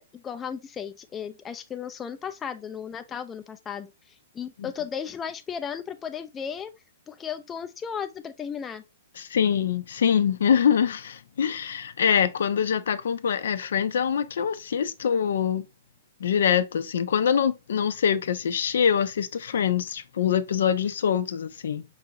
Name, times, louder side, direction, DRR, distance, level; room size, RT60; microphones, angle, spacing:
voice 1, 0.0-6.7 7.1-8.8, left 7 dB, 15° left, 0.4 m, -35 dB
voice 2, 9.2-15.6 16.2-21.8, left 8 dB, 75° left, 0.5 m, -24 dB
5.6 x 2.5 x 2.8 m
hypercardioid pair, 150°, 0 cm